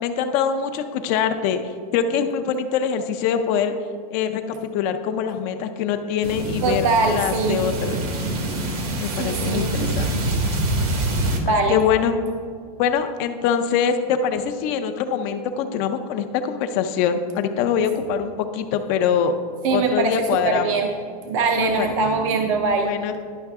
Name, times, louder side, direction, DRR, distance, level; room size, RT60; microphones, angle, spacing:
voice 1, 0.0-3.7 4.1-8.0 9.0-10.2 11.5-12.2 12.8-19.3 19.7-20.7 21.6-21.9 22.8-23.2, left 7 dB, 35° left, 7 dB, 0.4 m, -24 dB
sound 1, 6.2-11.4, right 1 dB, 70° right, 1.5 m, -25 dB
voice 2, 6.6-7.6 9.1-10.0 11.4-11.8 19.6-20.1 20.4-20.9 21.3-22.9, right 4 dB, 55° right, 3 dB, 0.7 m, -22 dB
11.0 x 5.6 x 3.5 m, 2.1 s
supercardioid pair, 165°, 20 cm